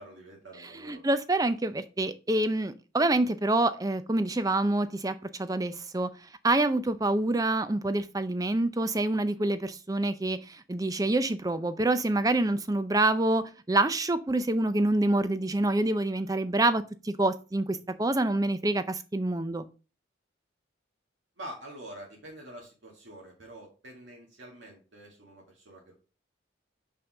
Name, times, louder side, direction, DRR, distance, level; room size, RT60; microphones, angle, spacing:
voice 1, 0.0-1.1 21.4-25.9, right 1 dB, 75° right, -2 dB, 2.0 m, -46 dB
voice 2, 0.8-6.1 6.4-19.6, right 2 dB, 20° right, 12 dB, 0.5 m, -27 dB
5.6 x 5.3 x 4.8 m, 0.33 s
head